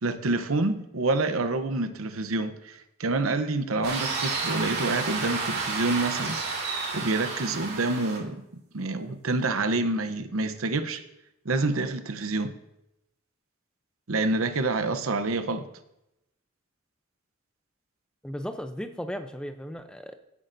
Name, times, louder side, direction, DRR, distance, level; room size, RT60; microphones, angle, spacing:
voice 1, 0.0-6.5 6.9-11.0 11.4-12.5 14.1-15.6, right 2 dB, 85° right, 10 dB, 0.8 m, -27 dB
sound 1, 3.8-8.2, right 4 dB, 50° right, 2.5 m, -31 dB
voice 2, 18.2-20.1, equal, 5° left, 8 dB, 0.5 m, -36 dB
16.0 x 8.5 x 2.6 m, 0.86 s
head